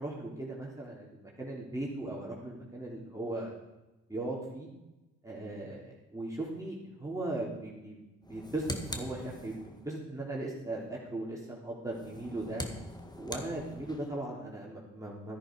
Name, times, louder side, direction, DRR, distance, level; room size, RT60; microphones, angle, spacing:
voice 1, 0.0-3.5 4.1-4.7 5.2-8.0 8.3-12.7 13.2-15.4, right 2 dB, 10° right, -4 dB, 3.7 m, -38 dB
button press, 8.2-9.9 11.9-14.2, left 1 dB, 10° left, 1.8 m, -42 dB
13.5 x 10.0 x 4.9 m, 1.0 s
hypercardioid pair, 55°, 35 cm